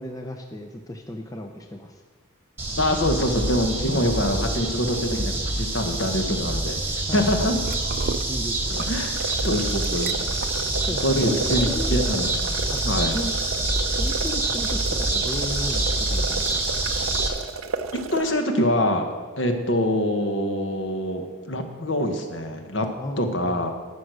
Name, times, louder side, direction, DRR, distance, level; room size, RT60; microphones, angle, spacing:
voice 1, 0.0-2.0 3.9-4.0 7.1-7.8 8.3-9.0 10.9-12.0 12.7-12.8 13.1-13.3 14.0-16.5 23.0-23.6, equal, 15° left, 4 dB, 0.6 m, -34 dB
sound 1, 2.6-17.3, right 2 dB, 10° right, 1.3 m, -26 dB
voice 2, 2.8-7.6 8.7-9.2 9.4-10.2 11.0-12.3 12.8-13.2 17.9-22.9 23.2-23.7, left 1 dB, 55° left, 5 dB, 1.3 m, -25 dB
sound 2, 7.6-11.6, right 3 dB, 50° right, 0.5 m, -36 dB
sound 3, 9.1-18.3, right 4 dB, 85° right, 0.7 m, -34 dB
12.5 x 6.5 x 6.2 m, 1.5 s
head